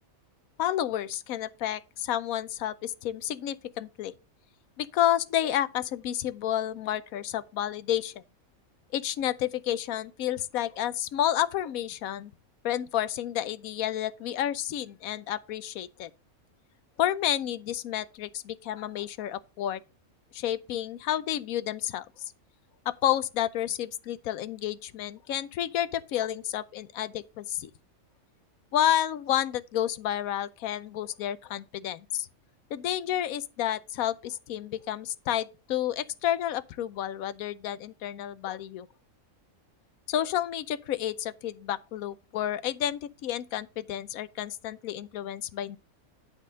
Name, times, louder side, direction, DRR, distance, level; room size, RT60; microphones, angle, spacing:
voice 1, 0.6-4.1 4.8-8.1 8.9-12.3 12.6-16.1 17.0-19.8 20.3-22.1 22.9-27.7 28.7-32.3 32.7-38.9 40.1-45.8, left 11 dB, 80° left, 1.1 m, -30 dB
11.0 x 3.8 x 6.3 m
omnidirectional pair, 1.5 m